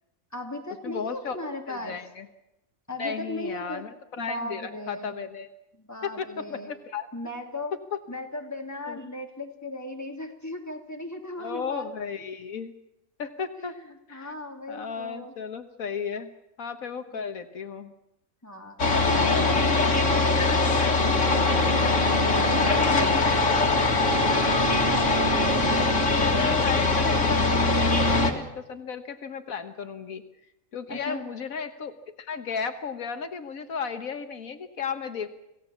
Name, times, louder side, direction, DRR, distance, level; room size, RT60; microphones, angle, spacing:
voice 1, 0.3-2.0 2.9-3.8 4.2-5.2 5.8-6.7 7.1-7.8 8.1-11.9 13.6-13.8 14.1-15.4 17.1-17.2 18.4-18.8 19.2-23.8 30.9-31.2, left 1 dB, 10° left, 2 dB, 3.0 m, -37 dB
voice 2, 0.8-1.4 1.7-2.3 3.0-5.5 6.0-7.1 7.9-8.0 8.9-9.0 11.4-12.7 13.2-13.8 14.1-14.3 14.7-16.3 16.6-17.9 25.6-30.2 30.7-35.3, left 6 dB, 75° left, 8 dB, 1.6 m, -34 dB
sound 1, 18.8-28.3, left 2 dB, 60° left, 2.6 m, -22 dB
27.0 x 16.5 x 7.2 m, 0.91 s
omnidirectional pair, 1.5 m